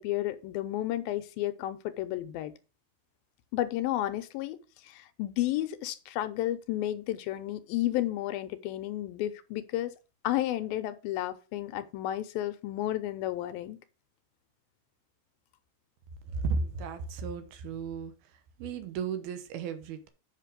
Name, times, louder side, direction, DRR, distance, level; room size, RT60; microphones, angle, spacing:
voice 1, 0.0-2.5 3.5-4.6 4.8-9.9 10.2-13.8, left 14 dB, 85° left, 2.5 m, -32 dB
voice 2, 16.3-18.1 18.6-20.1, right 5 dB, 85° right, 2.9 m, -34 dB
8.2 x 5.9 x 5.1 m
omnidirectional pair, 4.3 m